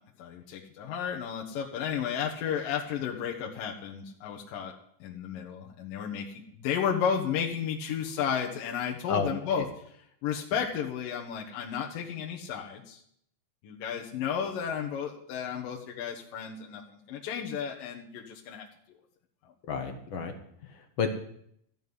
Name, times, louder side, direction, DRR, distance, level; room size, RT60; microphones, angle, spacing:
voice 1, 0.2-4.7 5.0-6.3 6.6-9.7 10.2-13.0 13.6-19.0, left 7 dB, 75° left, -1 dB, 2.8 m, -33 dB
voice 2, 19.7-20.3 20.7-21.1, left 6 dB, 60° left, 5 dB, 1.3 m, -31 dB
14.5 x 5.5 x 9.6 m, 0.69 s
omnidirectional pair, 4.0 m